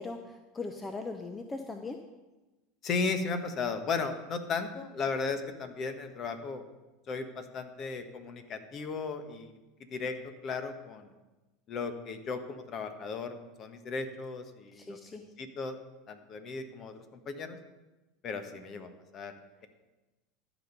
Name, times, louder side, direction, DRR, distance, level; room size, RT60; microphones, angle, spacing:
voice 1, 0.0-2.0 14.7-15.2, left 3 dB, 20° left, 6 dB, 0.8 m, -39 dB
voice 2, 2.8-6.6 7.1-9.5 9.9-10.2 10.4-11.1 11.7-15.8 16.1-17.0 17.2-17.6 18.2-19.3, left 4 dB, 40° left, 8 dB, 1.3 m, -35 dB
13.5 x 5.3 x 6.8 m, 1.1 s
figure-of-eight pair, 80°, 0 cm